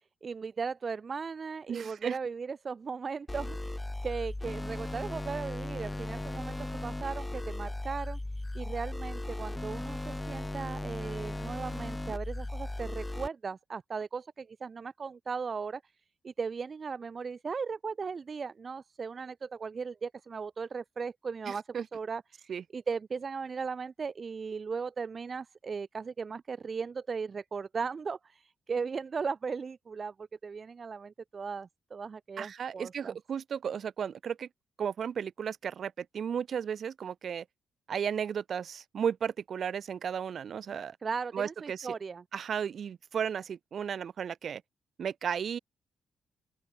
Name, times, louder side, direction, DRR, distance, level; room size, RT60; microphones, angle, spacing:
voice 1, 0.2-8.2 8.5-15.8 16.2-33.1 41.0-42.2, right 5 dB, 45° right, 2.3 m, -37 dB
voice 2, 1.7-2.2 21.5-21.9 22.5-22.6 32.4-34.5 34.8-37.4 37.9-41.0 41.3-41.9 42.3-44.6 45.0-45.6, right 7 dB, 60° right, 1.6 m, -34 dB
sound 1, 3.3-13.3, left 2 dB, 15° left, 6.2 m, -37 dB
open air
supercardioid pair, 60°, 0 cm